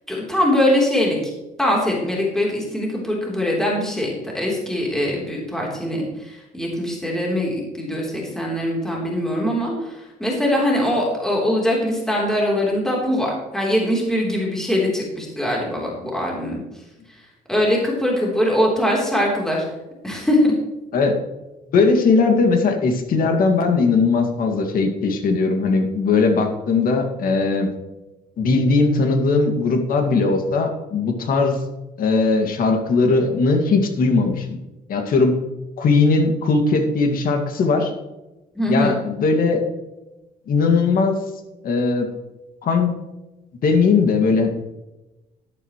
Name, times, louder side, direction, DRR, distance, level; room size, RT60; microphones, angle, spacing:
voice 1, 0.1-1.3 1.6-16.6 17.5-19.6 20.0-20.5 38.6-39.0, left 1 dB, 5° left, -3 dB, 3.5 m, -22 dB
voice 2, 21.7-27.7 28.4-31.6 32.0-34.5 34.9-35.4 35.8-37.9 38.7-39.6 40.5-41.2 41.6-42.1 42.6-42.9 43.6-44.5, left 4 dB, 55° left, 4 dB, 2.1 m, -19 dB
12.0 x 11.5 x 3.1 m, 1.0 s
cardioid pair, 110°, 17 cm